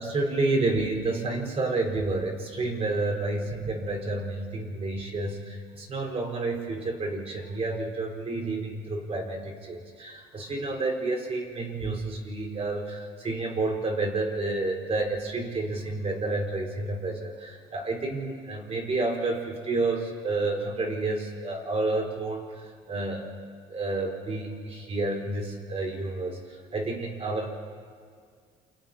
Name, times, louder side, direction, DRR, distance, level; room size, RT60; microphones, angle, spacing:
voice 1, 0.0-23.3 23.7-27.5, right 2 dB, 35° right, 1 dB, 5.0 m, -30 dB
29.5 x 29.5 x 3.0 m, 2.1 s
cardioid pair, 110°, 17 cm